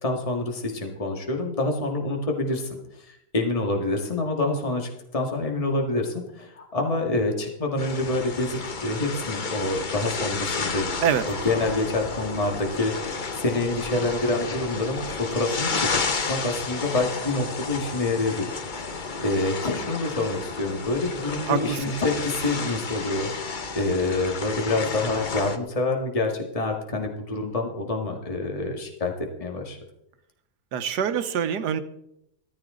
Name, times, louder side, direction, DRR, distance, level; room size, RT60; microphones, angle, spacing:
voice 1, 0.0-2.7 3.0-10.8 11.3-18.5 19.2-29.8, left 2 dB, 20° left, 2 dB, 1.9 m, -27 dB
sound 1, 7.8-25.6, left 4 dB, 35° left, 0.9 m, -32 dB
voice 2, 21.5-21.8 30.7-31.8, right 8 dB, 90° right, 10 dB, 1.5 m, -24 dB
15.5 x 14.0 x 3.8 m, 0.80 s
omnidirectional pair, 1.7 m